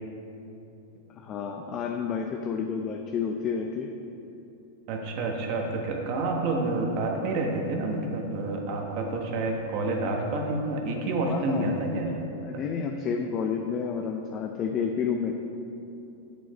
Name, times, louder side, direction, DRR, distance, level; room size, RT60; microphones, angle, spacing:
voice 1, 1.1-3.9 11.3-11.8 12.4-15.3, left 6 dB, 30° left, 3 dB, 0.5 m, -30 dB
voice 2, 4.9-12.0, right 2 dB, 50° right, 1 dB, 1.4 m, -28 dB
7.8 x 6.7 x 4.3 m, 2.8 s
hypercardioid pair, 130°, 0 cm